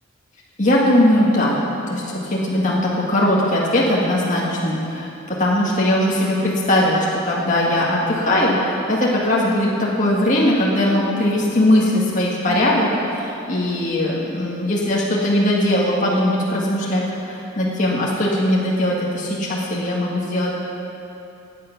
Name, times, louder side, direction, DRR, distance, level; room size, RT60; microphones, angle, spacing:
voice 1, 0.6-1.6 1.9-20.6, left 1 dB, 40° left, -5 dB, 1.8 m, -20 dB
16.5 x 9.4 x 5.9 m, 2.8 s
head